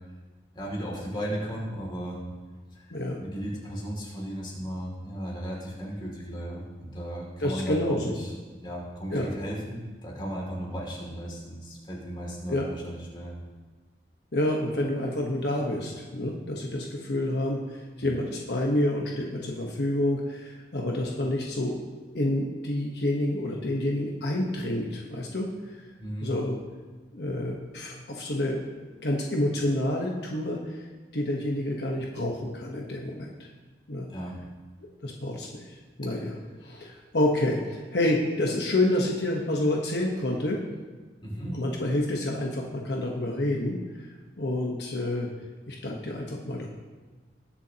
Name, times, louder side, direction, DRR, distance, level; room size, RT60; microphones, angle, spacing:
voice 1, 0.5-2.2 2.7-2.8 3.2-8.3 8.6-13.4 18.0-18.2 26.0-26.3 34.1-34.4 36.9-37.0 41.2-41.6, equal, 25° left, -3 dB, 2.6 m, -35 dB
voice 2, 7.4-8.2 9.1-9.3 12.5-12.7 14.3-21.8 22.1-25.5 26.2-26.6 27.1-28.6 29.0-30.8 31.1-33.3 33.9-34.1 35.0-40.6 41.5-44.1 44.4-45.3 45.7-46.7, left 1 dB, 70° left, -1 dB, 1.2 m, -28 dB
20.5 x 7.1 x 2.9 m, 1.3 s
head